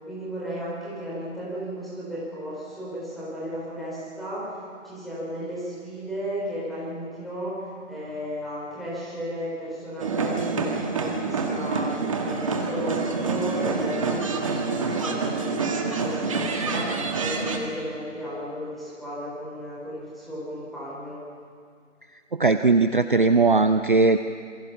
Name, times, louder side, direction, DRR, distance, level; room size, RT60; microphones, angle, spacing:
voice 1, 0.1-21.2, equal, ahead, -8 dB, 4.1 m, -34 dB
sound 1, 10.0-17.6, right 4 dB, 25° right, 1.7 m, -27 dB
voice 2, 22.3-24.2, right 3 dB, 40° right, 10 dB, 0.7 m, -19 dB
27.0 x 23.5 x 5.7 m, 2.1 s
figure-of-eight pair, 155°, 39 cm